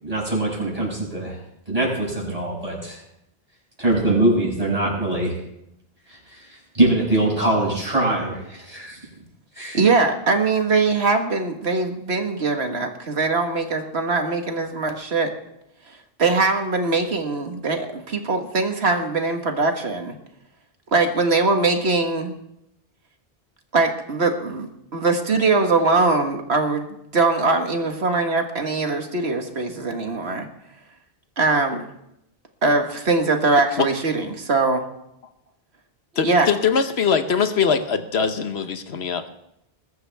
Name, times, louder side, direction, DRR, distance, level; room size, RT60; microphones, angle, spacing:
voice 1, 0.0-1.4 1.7-3.0 3.8-5.4 6.1-9.0 9.5-9.8, right 2 dB, 35° right, -4 dB, 6.2 m, -23 dB
voice 2, 9.7-15.3 16.2-20.2 20.9-22.3 23.7-24.7 24.9-30.5 31.4-31.9 32.6-34.9 36.2-36.5, right 3 dB, 80° right, 4 dB, 1.8 m, -21 dB
voice 3, 36.2-39.3, left 6 dB, 75° left, 8 dB, 1.3 m, -22 dB
21.0 x 12.5 x 3.5 m, 0.81 s
omnidirectional pair, 1.1 m